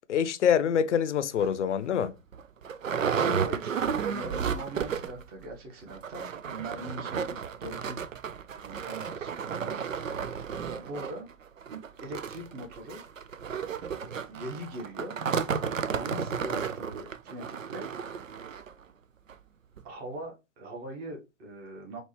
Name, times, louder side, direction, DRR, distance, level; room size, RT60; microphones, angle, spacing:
voice 1, 0.1-2.2, left 8 dB, 65° left, 0.6 m, -25 dB
sound 1, 1.4-1.5 2.0-2.1 2.3-5.3 5.5-5.6 5.9-18.7 19.3-19.4 19.8-19.9, right 6 dB, 90° right, 0.5 m, -33 dB
voice 2, 3.1-8.0 8.6-10.3 10.7-11.3 11.7-13.1 14.0-15.2 15.9-18.2 19.8-22.0, right 1 dB, 25° right, 1.3 m, -41 dB
4.2 x 3.0 x 3.1 m
figure-of-eight pair, 110°, 38 cm